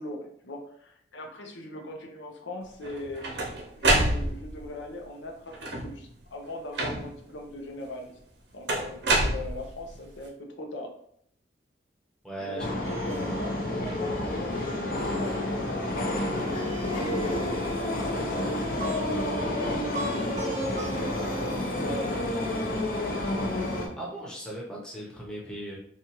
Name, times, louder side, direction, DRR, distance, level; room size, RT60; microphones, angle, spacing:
voice 1, 0.0-5.5 5.8-8.1 8.5-10.9 12.4-16.4 16.9-21.0 21.4-22.7, left 1 dB, 90° left, 1 dB, 0.7 m, -39 dB
sound 1, 2.8-4.7 5.5-6.1 6.8-7.3 8.7-10.0, right 2 dB, 75° right, 0.7 m, -27 dB
voice 2, 12.2-12.6 13.0-13.1 13.9-14.6 24.0-25.8, right 1 dB, 5° left, -5 dB, 0.8 m, -39 dB
sound 2, 12.6-23.9, left 1 dB, 50° left, 0.7 m, -30 dB
Plucked string instrument, 12.8-23.2, right 3 dB, 40° right, 0.6 m, -43 dB
4.2 x 2.3 x 2.9 m, 0.66 s
head